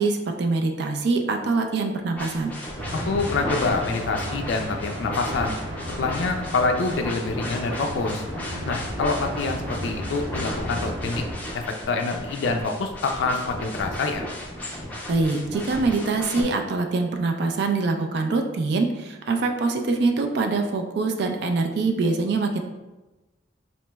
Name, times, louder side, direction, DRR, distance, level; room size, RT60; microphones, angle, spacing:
voice 1, 0.0-2.5 15.1-22.6, right 3 dB, 60° right, 4 dB, 0.3 m, -24 dB
sound 1, 2.2-16.4, left 1 dB, 10° left, 0.4 m, -35 dB
sound 2, 2.8-11.3, equal, 85° right, 1.0 m, -34 dB
voice 2, 2.9-5.5 6.0-8.2 8.7-11.2 11.5-14.3, left 3 dB, 70° left, 4 dB, 0.3 m, -26 dB
4.1 x 3.0 x 2.2 m, 1.1 s
head